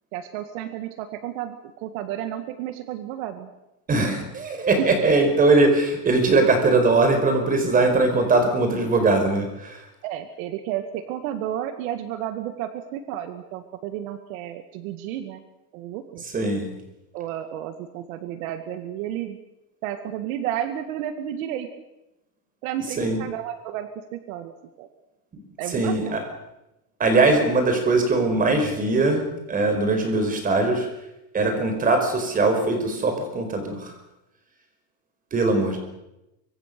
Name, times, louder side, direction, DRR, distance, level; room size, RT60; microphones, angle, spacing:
voice 1, 0.1-3.5 4.8-4.9 10.0-15.4 15.7-16.2 17.1-19.4 19.8-21.7 22.6-24.9 25.6-26.2, right 11 dB, 60° right, 8 dB, 2.1 m, -32 dB
voice 2, 3.9-9.8 16.3-16.7 23.0-23.2 25.7-26.2 27.0-30.9 31.3-33.9 35.3-35.8, right 3 dB, 20° right, 5 dB, 4.9 m, -21 dB
24.5 x 24.5 x 6.9 m, 0.92 s
supercardioid pair, 170°, 46 cm